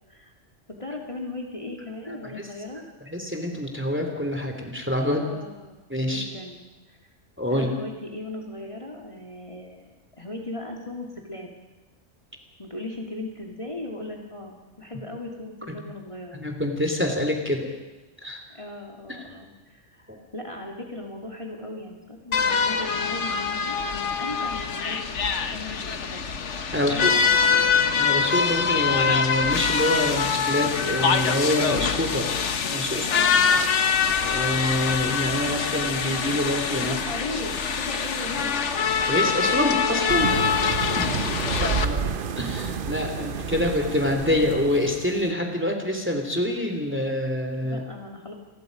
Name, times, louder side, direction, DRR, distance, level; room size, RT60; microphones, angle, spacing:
voice 1, 0.8-2.8 5.1-6.6 6.9-7.0 7.5-11.5 12.6-16.4 18.5-26.4 26.8-27.6 32.9-33.5 36.8-38.6 40.3-40.8 47.6-48.3, left 2 dB, 25° left, 0 dB, 2.7 m, -38 dB
voice 2, 2.1-2.4 3.1-5.3 5.9-6.2 7.4-7.7 16.3-17.7 18.2-18.4 19.1-19.2 20.1-20.2 26.7-27.1 28.0-32.3 32.7-33.1 34.2-37.0 39.1-40.3 41.0-42.1 42.4-47.8, left 1 dB, 10° right, 3 dB, 2.8 m, -26 dB
sound 1, 22.3-41.8, left 6 dB, 70° left, 1.5 m, -24 dB
sound 2, 40.1-45.3, right 6 dB, 50° right, 0.9 m, -30 dB
28.5 x 20.5 x 5.3 m, 1.1 s
omnidirectional pair, 1.3 m